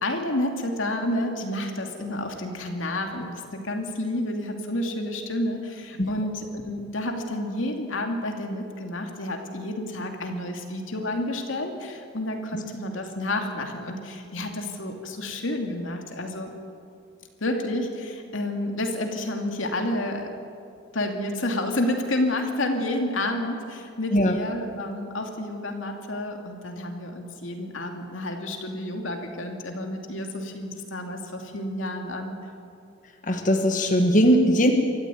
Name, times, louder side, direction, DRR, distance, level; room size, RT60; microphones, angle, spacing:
voice 1, 0.0-16.5 17.4-20.3 20.9-32.3, left 1 dB, 90° left, 3 dB, 2.7 m, -30 dB
voice 2, 33.2-34.7, equal, 40° left, 3 dB, 1.5 m, -19 dB
24.5 x 14.5 x 9.2 m, 2.5 s
head